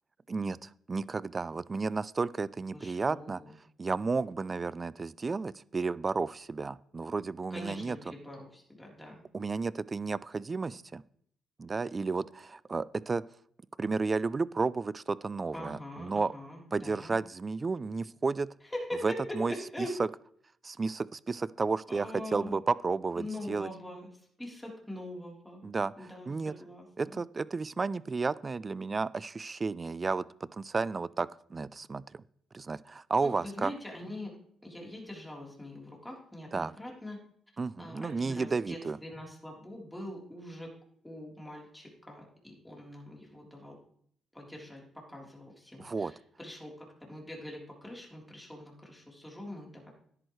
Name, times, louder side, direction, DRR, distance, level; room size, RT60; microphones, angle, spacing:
voice 1, 0.3-3.4 3.8-8.0 9.3-11.0 11.6-13.2 13.8-16.3 16.7-18.5 19.0-19.5 20.0-20.1 20.6-23.7 25.6-26.5 27.0-30.2 30.5-32.2 32.5-33.7 36.5-36.7 37.6-39.0 45.8-46.1, right 4 dB, 30° right, 20 dB, 0.4 m, -32 dB
voice 2, 2.7-3.5 7.5-9.2 15.5-17.2 18.6-19.9 21.9-22.6 23.1-24.1 24.4-25.6 26.0-27.2 33.2-34.3 34.6-37.2 37.8-40.7 41.0-43.7 44.3-44.8 45.1-49.9, left 1 dB, 5° left, -2 dB, 3.7 m, -43 dB
12.5 x 10.5 x 3.2 m, 0.63 s
cardioid pair, 90°, 0 cm